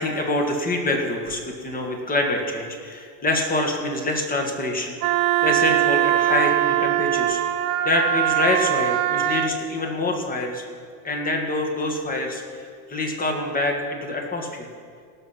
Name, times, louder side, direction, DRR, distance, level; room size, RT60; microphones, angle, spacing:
voice 1, 0.0-5.0 5.4-7.4 7.8-10.6 11.0-12.4 12.9-14.7, left 2 dB, 20° left, 2 dB, 1.9 m, -25 dB
Wind instrument woodwind instrument, 5.0-9.5, right 13 dB, 55° right, 0.8 m, -21 dB
18.5 x 6.7 x 5.9 m, 2.2 s
supercardioid pair, 120°, 45 cm